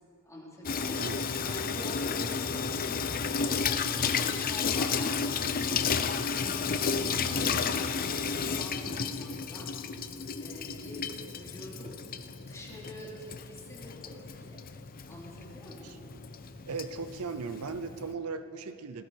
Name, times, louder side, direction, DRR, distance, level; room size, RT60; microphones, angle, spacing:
voice 1, 0.2-1.1 1.4-6.4 6.8-9.7 10.4-12.0 12.4-14.6 15.1-16.0, left 1 dB, 15° left, -4 dB, 3.0 m, -46 dB
Water tap faucet / Sink (filling or washing), 0.6-18.1, left 5 dB, 40° left, 0.6 m, -32 dB
voice 2, 16.6-19.0, right 4 dB, 70° right, 11 dB, 0.6 m, -37 dB
17.0 x 13.0 x 4.7 m, 2.7 s
head